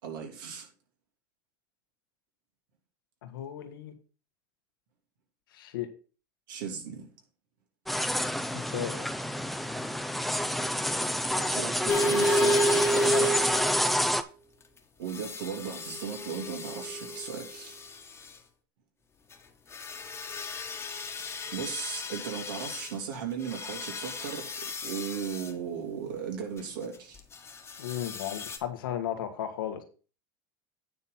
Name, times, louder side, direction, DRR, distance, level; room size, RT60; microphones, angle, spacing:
voice 1, 0.0-0.7 6.5-7.1 11.3-13.5 15.0-17.8 21.5-27.2, right 7 dB, 75° right, 3.1 m, -37 dB
voice 2, 3.2-3.9 5.5-5.9 8.5-9.1 13.0-13.3 27.8-29.8, left 10 dB, 90° left, 1.7 m, -35 dB
sound 1, 7.9-14.2, equal, ahead, 0.7 m, -28 dB
sound 2, 11.9-14.0 15.1-17.6 19.7-22.9 23.5-25.5 27.9-28.6, equal, 20° left, 1.4 m, -31 dB
9.4 x 4.1 x 5.8 m
supercardioid pair, 105°, 11 cm